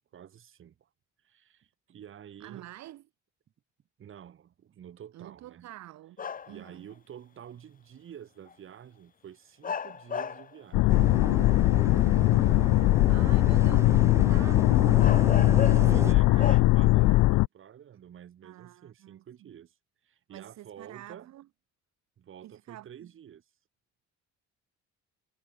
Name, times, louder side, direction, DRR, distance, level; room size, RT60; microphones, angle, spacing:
voice 1, 0.1-0.9 1.2-2.7 4.0-5.7 6.5-10.9 15.4-19.8 20.0-21.3 22.2-23.4, right 9 dB, 45° right, 6.2 m, -49 dB
voice 2, 2.4-3.0 5.1-6.9 12.3-15.4 15.6-16.8 17.0-17.4 18.4-19.5 20.3-21.5 22.4-23.1, right 14 dB, 65° right, 1.9 m, -47 dB
sound 1, 6.2-6.7 8.5-8.6 9.6-10.5 11.2-11.8 14.3-14.4 15.0-16.0 16.4-16.6, left 7 dB, 30° left, 1.9 m, -34 dB
sound 2, 10.7-17.5, left 19 dB, 85° left, 0.6 m, -21 dB
sound 3, 10.9-16.1, right 3 dB, 10° right, 0.8 m, -35 dB
cardioid pair, 175°, 30 cm